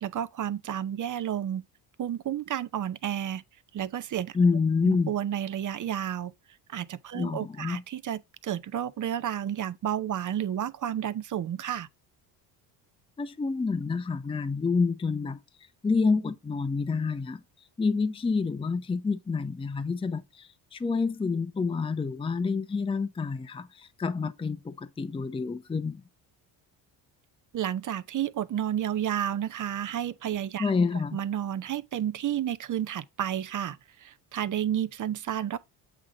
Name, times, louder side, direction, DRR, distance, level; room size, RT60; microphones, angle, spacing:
voice 1, 0.0-1.6 2.0-3.4 3.7-4.4 4.8-6.3 6.7-11.9 27.5-30.7 31.1-35.6, right 10 dB, 40° right, 0.7 m, -31 dB
voice 2, 4.3-5.1 7.1-7.8 13.2-15.4 15.8-17.4 17.8-26.0 30.6-31.2, left 4 dB, 10° left, 0.6 m, -28 dB
8.1 x 3.6 x 3.9 m
supercardioid pair, 70°, 49 cm